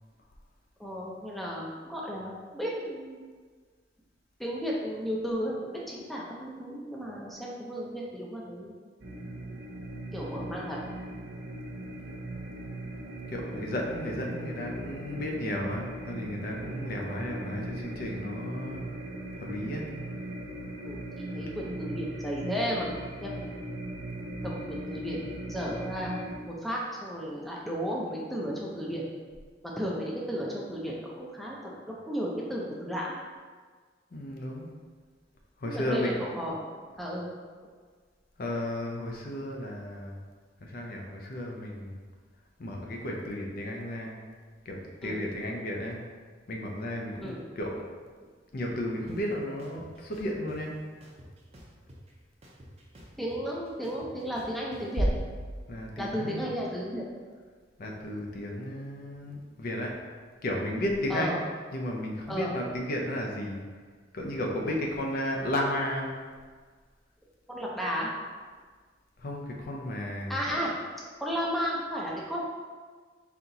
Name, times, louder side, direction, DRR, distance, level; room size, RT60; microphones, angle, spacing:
voice 1, 0.8-3.2 4.4-8.7 10.1-10.8 20.9-23.3 24.4-29.1 29.6-33.1 35.7-36.6 37.0-37.3 45.0-45.2 47.2-47.4 53.2-55.1 56.0-57.0 61.1-61.4 62.3-62.5 67.5-68.1 70.3-70.7 71.2-72.4, equal, ahead, -4 dB, 0.5 m, -34 dB
sound 1, 9.0-26.4, right 1 dB, 80° right, 0.6 m, -39 dB
voice 2, 13.3-18.8 19.4-19.9 28.1-28.3 34.1-34.7 35.6-36.2 38.4-40.2 40.6-42.0 42.6-44.2 44.7-46.0 46.5-47.8 48.5-50.8 55.7-56.5 57.8-60.0 60.4-61.4 61.7-63.6 64.1-66.1 69.2-70.4, left 1 dB, 55° left, 0 dB, 0.6 m, -33 dB
sound 2, 49.1-49.2 49.6-50.6 51.0-52.1 52.4-54.8, equal, 35° right, 0.7 m, -50 dB
sound 3, 55.0-56.8, right 1 dB, 60° right, 1.0 m, -32 dB
4.1 x 2.9 x 3.9 m, 1.5 s
head